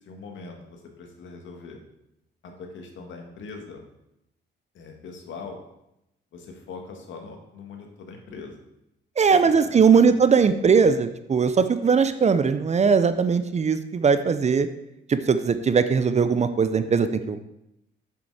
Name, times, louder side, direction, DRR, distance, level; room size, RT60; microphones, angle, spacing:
voice 1, 0.1-1.8 2.4-3.8 4.7-5.6 6.3-8.6 9.3-10.2, left 4 dB, 70° left, 3 dB, 1.9 m, -41 dB
voice 2, 9.2-14.7 15.1-17.4, right 5 dB, 35° right, 11 dB, 0.6 m, -20 dB
7.5 x 6.9 x 4.9 m, 0.84 s
cardioid pair, 90°, 20 cm